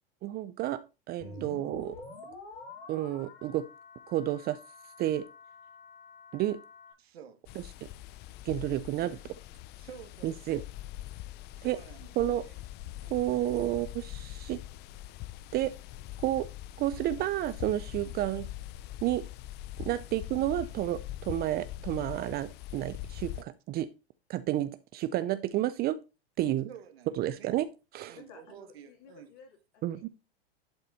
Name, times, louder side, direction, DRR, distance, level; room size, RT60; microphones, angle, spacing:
voice 1, 0.2-2.0 2.9-3.7 4.1-4.6 5.0-5.3 6.3-6.6 8.4-9.2 10.2-10.6 11.6-11.8 12.2-12.5 13.1-14.6 15.5-15.7 16.2-16.5 16.8-18.5 19.0-19.2 19.8-23.9 24.3-26.0 26.4-26.7 27.1-27.7 27.9-28.2 29.8-30.1, right 14 dB, 30° right, 0.5 m, -31 dB
sound 1, 1.2-6.9, left 3 dB, 80° left, 5.1 m, -48 dB
voice 2, 1.2-1.6 7.0-7.4 9.0-9.4 9.8-10.6 11.5-12.5 13.0-13.3 18.0-18.2 19.9-20.1 26.7-27.5 28.1-29.3, right 9 dB, 80° right, 2.0 m, -50 dB
sound 2, 7.5-23.4, left 14 dB, 35° left, 0.5 m, -43 dB
voice 3, 28.1-30.1, left 6 dB, 50° left, 3.6 m, -55 dB
11.5 x 4.0 x 4.1 m
hypercardioid pair, 120°, 31 cm